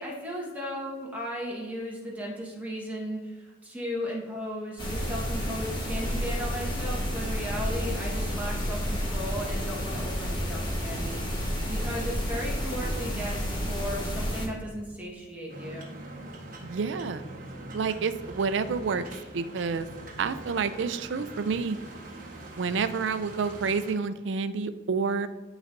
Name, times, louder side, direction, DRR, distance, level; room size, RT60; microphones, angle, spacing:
voice 1, 0.0-11.2 11.7-15.9, equal, 10° right, -4 dB, 1.3 m, -36 dB
sound 1, 4.8-14.5, equal, 25° left, 1.3 m, -30 dB
sound 2, 15.5-23.9, right 1 dB, 45° right, 1.3 m, -43 dB
voice 2, 16.6-17.3 17.7-19.1 19.3-19.9 20.2-21.8 22.6-25.3, right 5 dB, 75° right, 12 dB, 0.4 m, -29 dB
12.0 x 4.0 x 2.6 m, 1.3 s
head